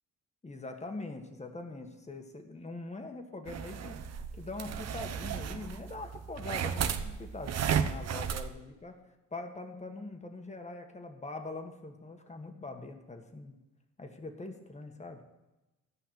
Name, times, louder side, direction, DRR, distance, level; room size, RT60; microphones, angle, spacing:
voice 1, 0.4-4.0 4.3-9.0 9.3-13.6 14.0-15.2, left 2 dB, 20° left, 5 dB, 1.7 m, -43 dB
sound 1, 3.5-8.5, right 8 dB, 60° right, 0.9 m, -34 dB
13.5 x 5.7 x 7.8 m, 1.0 s
cardioid pair, 90°, 30 cm